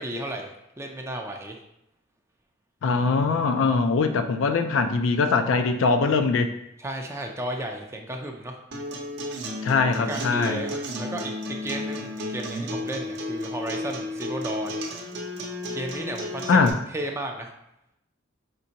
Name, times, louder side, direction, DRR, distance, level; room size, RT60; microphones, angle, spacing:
voice 1, 0.0-1.6 6.8-8.6 9.9-14.8 15.7-17.5, right 1 dB, 15° right, 3 dB, 0.4 m, -34 dB
voice 2, 2.8-6.5 9.6-10.6 16.5-16.8, left 4 dB, 70° left, 7 dB, 0.4 m, -22 dB
Acoustic guitar, 8.7-16.7, left 1 dB, 60° right, 0.7 m, -33 dB
5.2 x 3.5 x 2.8 m, 0.84 s
head